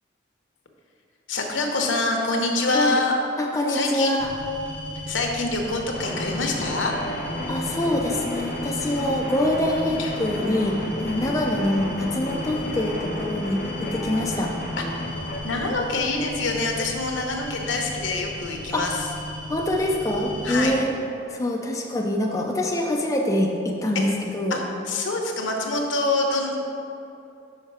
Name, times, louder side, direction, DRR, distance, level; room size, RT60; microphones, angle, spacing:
voice 1, 1.3-3.1 3.7-4.2 5.1-6.9 10.0-10.1 15.4-19.1 20.4-20.7 23.9-24.0 24.5-26.6, left 2 dB, 85° left, 2 dB, 0.9 m, -25 dB
voice 2, 3.4-4.3 7.5-14.5 18.7-18.9 19.5-20.9 21.3-24.6, left 1 dB, 15° left, 0 dB, 0.4 m, -25 dB
sound 1, 4.2-20.8, left 1 dB, 80° right, 1.2 m, -36 dB
sound 2, 5.9-15.4, left 1 dB, 45° left, 0.7 m, -33 dB
5.6 x 5.6 x 4.7 m, 2.7 s
head